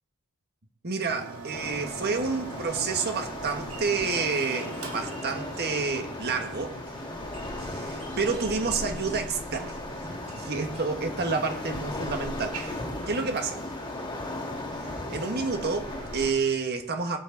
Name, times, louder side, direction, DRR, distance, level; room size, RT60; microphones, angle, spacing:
voice 1, 0.8-6.8 7.6-9.8 10.3-12.8 13.1-13.6 14.9-17.2, right 4 dB, 50° right, 1.5 m, -29 dB
sound 1, 1.1-16.5, right 3 dB, 85° right, 2.1 m, -44 dB
Waves surf, 1.5-16.3, left 2 dB, 20° left, 2.2 m, -37 dB
sound 2, 2.5-2.8 3.2-6.4 6.9-9.9 10.3-11.1, right 3 dB, 30° right, 4.1 m, -52 dB
22.0 x 8.4 x 4.0 m
head